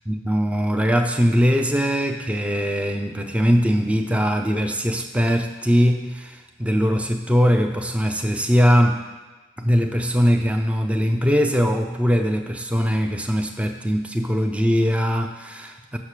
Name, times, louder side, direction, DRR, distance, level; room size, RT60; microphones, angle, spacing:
voice 1, 0.1-9.0 9.6-16.0, equal, 5° right, 4 dB, 0.4 m, -21 dB
6.4 x 5.9 x 6.6 m, 1.3 s
head